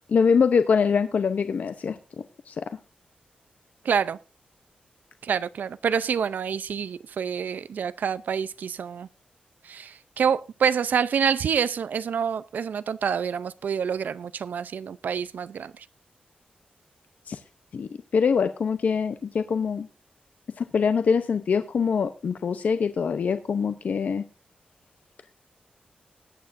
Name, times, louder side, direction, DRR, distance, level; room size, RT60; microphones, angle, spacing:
voice 1, 0.1-2.0 2.5-2.7 17.3-17.4 17.7-19.9 20.6-24.2, left 6 dB, 60° left, 0.7 m, -24 dB
voice 2, 3.8-4.2 5.2-9.1 9.6-15.9, right 7 dB, 75° right, 0.5 m, -27 dB
20.0 x 8.8 x 2.6 m
wide cardioid pair, 155°, 3 cm